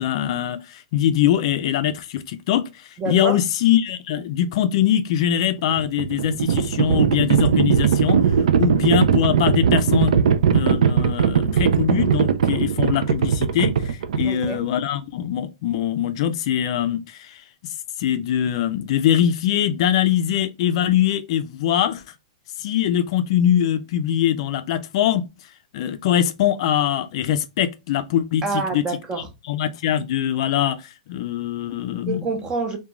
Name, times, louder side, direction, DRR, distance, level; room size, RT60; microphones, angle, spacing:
voice 1, 0.0-8.2 8.6-10.2 10.5-17.4 18.0-22.0 22.6-25.2 25.7-28.8 29.4-32.2, left 10 dB, 55° left, 0.4 m, -22 dB
voice 2, 3.0-3.4 14.2-14.6 28.4-29.3 32.1-32.8, right 4 dB, 20° right, 0.7 m, -27 dB
Livestock farm animals working animals, 5.6-14.7, right 7 dB, 75° right, 0.4 m, -19 dB
2.4 x 2.2 x 2.9 m
hypercardioid pair, 135°, 4 cm